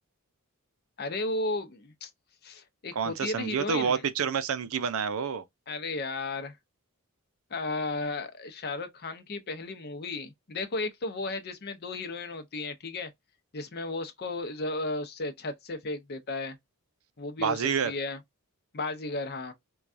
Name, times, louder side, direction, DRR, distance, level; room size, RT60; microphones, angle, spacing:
voice 1, 1.0-2.1 2.4-4.0 5.7-6.6 7.5-13.1 13.5-16.6 17.2-18.2 18.7-19.5, left 2 dB, 50° left, 0.7 m, -34 dB
voice 2, 3.0-5.4 17.4-17.9, right 6 dB, 65° right, 0.5 m, -28 dB
4.5 x 2.3 x 2.5 m
head